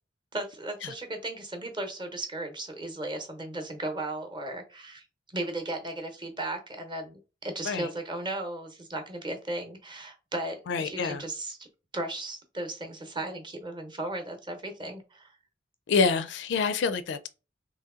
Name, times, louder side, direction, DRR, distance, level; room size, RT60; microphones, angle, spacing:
voice 1, 0.3-5.0 5.3-11.7 11.9-15.3, right 2 dB, 25° right, 0.8 m, -36 dB
voice 2, 10.7-11.2 15.9-17.3, left 5 dB, 65° left, 0.4 m, -26 dB
3.0 x 2.7 x 3.6 m
head